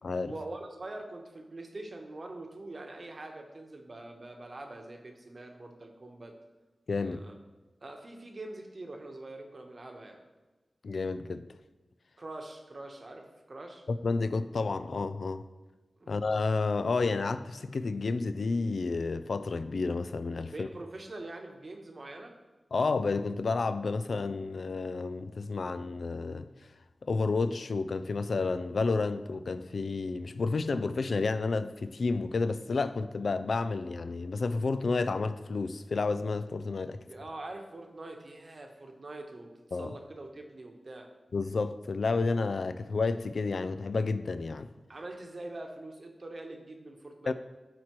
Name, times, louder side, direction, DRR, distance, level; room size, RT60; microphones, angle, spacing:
voice 1, 0.2-6.3 7.0-7.3 7.8-10.2 12.2-13.8 16.0-16.2 20.5-22.4 37.0-41.1 44.9-47.3, right 2 dB, 45° right, 1.0 m, -44 dB
voice 2, 6.9-7.2 10.8-11.5 13.9-15.5 16.1-20.7 22.7-26.5 27.0-37.0 39.7-39.9 41.3-44.7 47.3-47.4, left 3 dB, 70° left, 0.3 m, -30 dB
11.5 x 4.3 x 3.0 m
wide cardioid pair, 110°, 0 cm